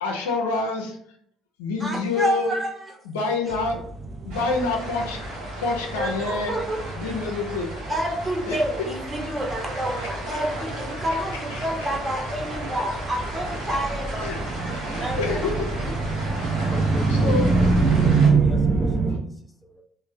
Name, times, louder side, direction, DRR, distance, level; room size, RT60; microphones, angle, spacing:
voice 1, 0.0-1.0 1.6-2.5 3.0-3.8 4.2-5.2 5.6-6.6 7.0-7.7 8.5-8.6 10.0-10.1 11.5-11.6 14.2-14.4 14.7-15.5 16.3-16.5 17.1-17.4, left 4 dB, 75° left, 1 dB, 0.4 m, -27 dB
voice 2, 1.8-2.9 3.5-3.6 5.9-6.8 7.9-14.3 15.0-15.4, right 1 dB, 25° right, 0 dB, 0.9 m, -29 dB
sound 1, 3.5-19.2, right 4 dB, 40° right, 0.5 m, -26 dB
sound 2, 4.3-18.3, right 1 dB, 70° right, 0.8 m, -35 dB
voice 3, 16.6-19.8, equal, 20° left, 4 dB, 0.5 m, -41 dB
3.1 x 2.0 x 2.5 m, 0.67 s
figure-of-eight pair, 50°, 0 cm